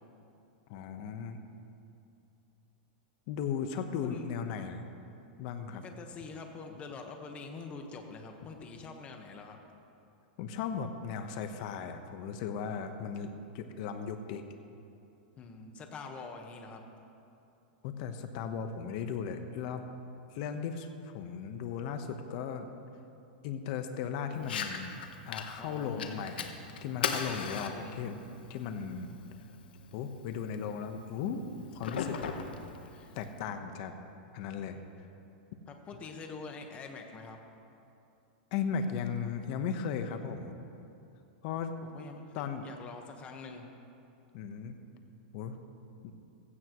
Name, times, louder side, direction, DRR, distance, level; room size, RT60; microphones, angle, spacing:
voice 1, 0.7-1.4 3.3-4.8 5.4-5.9 10.4-13.3 13.5-14.4 17.8-19.9 20.3-22.7 23.4-25.0 25.3-26.5 26.8-28.2 28.5-29.1 29.9-31.5 31.7-32.3 33.1-33.9 34.3-34.8 38.5-40.6 41.4-41.7 42.3-42.7 44.3-44.8 45.3-45.6 46.0-46.1, left 6 dB, 50° left, 7 dB, 1.1 m, -36 dB
voice 2, 4.0-4.4 5.8-9.6 15.4-16.8 25.6-26.2 27.5-28.0 32.9-33.1 35.7-37.4 41.9-42.2 42.6-43.7, left 4 dB, 25° left, 4 dB, 1.3 m, -45 dB
Fire, 24.4-33.4, left 6 dB, 90° left, 1.1 m, -40 dB
15.5 x 15.5 x 3.1 m, 2.7 s
supercardioid pair, 145°, 5 cm